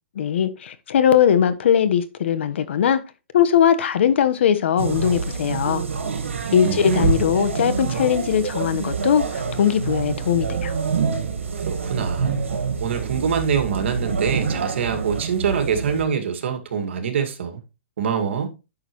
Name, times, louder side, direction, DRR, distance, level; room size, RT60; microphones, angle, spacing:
voice 1, 0.1-3.0 3.3-5.8 6.5-10.7, left 9 dB, 70° left, 1.3 m, -20 dB
sound 1, 4.8-16.0, right 5 dB, 90° right, 1.7 m, -26 dB
voice 2, 6.6-7.2 11.5-12.4 12.8-17.6 18.0-18.5, right 7 dB, 70° right, 2.2 m, -25 dB
10.5 x 6.5 x 3.1 m
hypercardioid pair, 140°, 7 cm